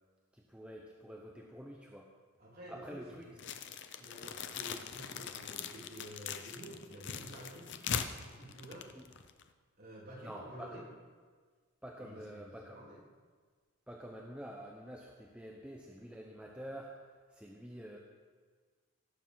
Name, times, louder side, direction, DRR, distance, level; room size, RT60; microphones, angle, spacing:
voice 1, 0.3-2.1 2.7-3.3 10.2-10.9 11.8-12.9 13.9-16.9 17.3-18.0, equal, 5° right, -1 dB, 0.8 m, -48 dB
voice 2, 2.4-3.6 4.0-7.9 8.2-8.9 9.8-10.9 12.0-13.1, right 1 dB, 45° right, -5 dB, 3.4 m, -50 dB
sound 1, 3.4-9.5, left 7 dB, 50° left, 0.6 m, -41 dB
17.0 x 7.2 x 5.6 m, 1.5 s
head